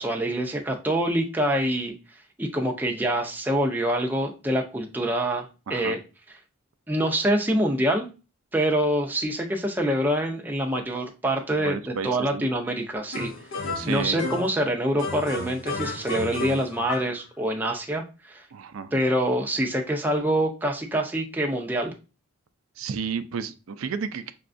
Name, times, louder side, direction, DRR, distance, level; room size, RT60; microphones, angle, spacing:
voice 1, 0.0-1.9 2.4-6.0 6.9-8.1 8.5-13.3 13.6-18.4 18.9-21.9, right 1 dB, 10° right, 1 dB, 0.5 m, -25 dB
voice 2, 5.7-6.0 11.5-12.5 13.8-14.2 18.5-18.9 22.8-24.3, right 6 dB, 85° right, 11 dB, 0.4 m, -32 dB
sound 1, 13.1-14.6 15.0-17.2, left 2 dB, 70° left, 0.6 m, -32 dB
5.7 x 2.3 x 2.5 m, 0.32 s
head